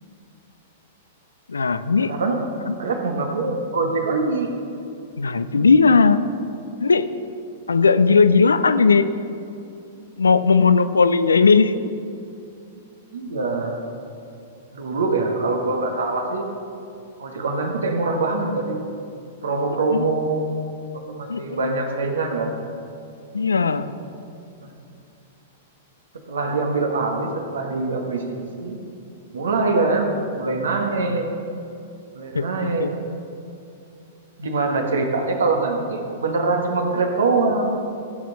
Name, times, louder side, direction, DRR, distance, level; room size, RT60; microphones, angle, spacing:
voice 1, 1.5-2.1 2.7-2.8 5.2-6.2 6.8-7.1 7.7-9.1 10.2-11.7 19.9-20.1 21.3-21.8 23.3-23.9 32.3-32.9, left 4 dB, 75° left, 13 dB, 0.5 m, -17 dB
voice 2, 2.1-2.4 2.8-4.5 13.1-13.8 14.7-16.5 17.2-18.8 19.4-20.4 20.9-22.5 24.6-24.7 26.3-28.8 29.3-31.3 32.1-32.9 34.4-37.7, right 3 dB, 70° right, 3 dB, 1.5 m, -23 dB
16.0 x 7.5 x 4.1 m, 2.6 s
figure-of-eight pair, 105°, 0 cm